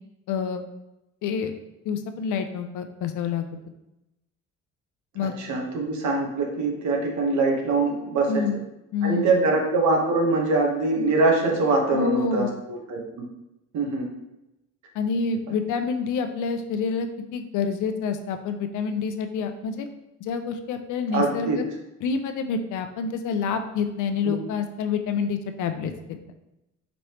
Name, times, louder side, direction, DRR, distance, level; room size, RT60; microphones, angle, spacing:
voice 1, 0.3-0.6 1.2-1.5 1.8-3.5 5.1-5.3 8.3-8.6 8.9-9.3 11.9-12.5 14.9-19.9 20.2-21.6 22.0-26.2, left 5 dB, 80° left, 8 dB, 0.6 m, -27 dB
voice 2, 5.4-8.4 9.0-13.0 13.7-14.1 21.1-21.6 24.2-24.3, right 3 dB, 70° right, 0 dB, 1.1 m, -23 dB
5.1 x 3.2 x 2.9 m, 0.91 s
cardioid pair, 90°, 30 cm